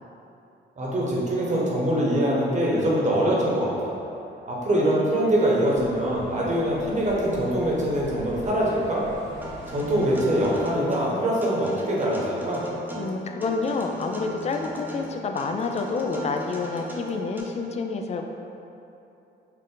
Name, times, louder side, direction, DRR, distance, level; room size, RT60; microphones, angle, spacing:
voice 1, 0.8-3.9 4.5-9.0 9.7-12.6, right 1 dB, 35° right, -5 dB, 1.0 m, -23 dB
sound 1, 5.7-10.7, right 1 dB, 65° right, 0.9 m, -43 dB
Acoustic guitar, 9.4-17.4, right 1 dB, 10° right, 0.6 m, -39 dB
voice 2, 13.0-18.3, left 4 dB, 35° left, 4 dB, 0.4 m, -28 dB
4.4 x 2.4 x 3.8 m, 2.9 s
cardioid pair, 90°, 20 cm